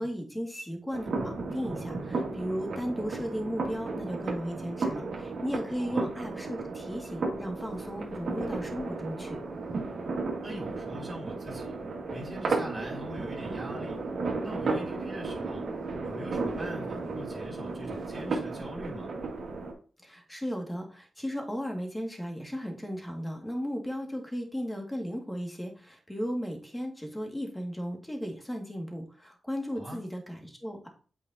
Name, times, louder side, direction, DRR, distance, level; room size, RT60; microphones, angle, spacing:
voice 1, 0.0-9.4 20.0-30.9, equal, 15° left, 2 dB, 2.0 m, -35 dB
sound 1, 0.9-19.7, right 3 dB, 70° right, 1.9 m, -34 dB
voice 2, 5.8-6.1 10.4-11.8 12.1-14.0 14.4-15.7 16.0-19.1 29.7-30.0, equal, 35° right, -3 dB, 3.1 m, -42 dB
8.3 x 4.9 x 2.8 m, 0.40 s
cardioid pair, 60°, 0 cm